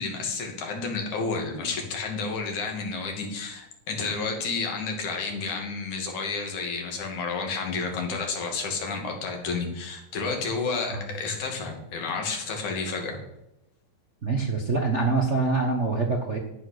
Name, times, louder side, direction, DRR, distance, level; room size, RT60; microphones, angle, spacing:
voice 1, 0.0-13.2, left 4 dB, 75° left, 2 dB, 3.8 m, -31 dB
voice 2, 14.2-16.4, right 3 dB, 65° right, 1 dB, 0.7 m, -25 dB
12.5 x 9.0 x 6.6 m, 0.87 s
omnidirectional pair, 3.5 m